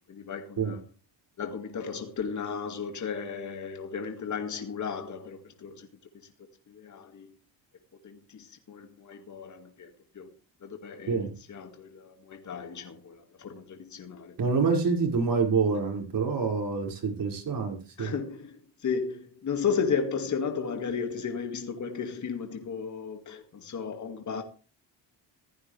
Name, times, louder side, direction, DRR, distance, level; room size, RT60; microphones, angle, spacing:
voice 1, 0.1-0.9 1.4-5.9 6.7-7.3 8.0-9.9 10.2-10.3 10.6-14.4 18.0-24.4, left 6 dB, 40° left, 2.1 m, -34 dB
voice 2, 14.4-18.1, right 5 dB, 50° right, 5.6 m, -27 dB
16.0 x 13.5 x 3.4 m
cardioid pair, 120°, 44 cm